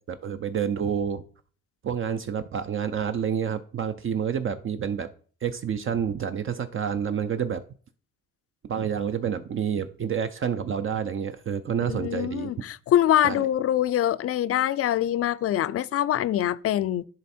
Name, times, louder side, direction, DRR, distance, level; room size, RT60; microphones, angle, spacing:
voice 1, 0.1-1.2 1.8-5.1 5.4-7.6 8.7-12.6 13.2-13.5, right 8 dB, 45° right, 0.5 m, -28 dB
voice 2, 11.9-17.0, left 12 dB, 50° left, 0.4 m, -24 dB
10.5 x 3.5 x 4.2 m
cardioid pair, 90°, 30 cm